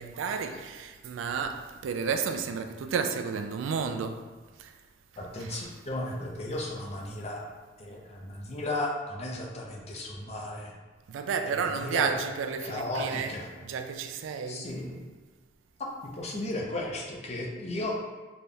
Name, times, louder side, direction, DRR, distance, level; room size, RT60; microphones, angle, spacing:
voice 1, 0.0-4.2 4.6-4.7 5.4-5.6 11.1-14.7, right 6 dB, 85° right, 0.3 m, -32 dB
voice 2, 5.2-7.5 7.8-10.7 11.5-12.2 12.6-13.5 14.5-15.0 15.8-18.0, left 1 dB, 35° left, 0.6 m, -35 dB
4.0 x 3.4 x 2.3 m
head